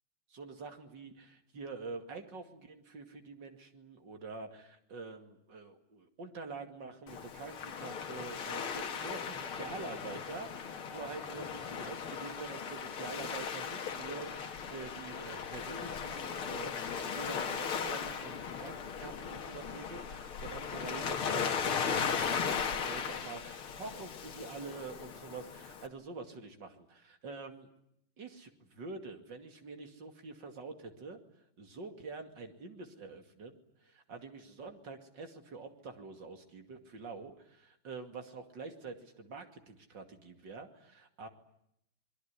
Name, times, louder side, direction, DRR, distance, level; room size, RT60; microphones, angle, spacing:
voice 1, 0.3-27.7 28.2-31.2 31.6-33.5 33.8-41.3, right 4 dB, 60° right, 6 dB, 3.1 m, -46 dB
Waves surf, 7.1-25.9, left 6 dB, 85° left, 2.6 m, -37 dB
26.5 x 22.0 x 9.9 m, 0.77 s
omnidirectional pair, 2.3 m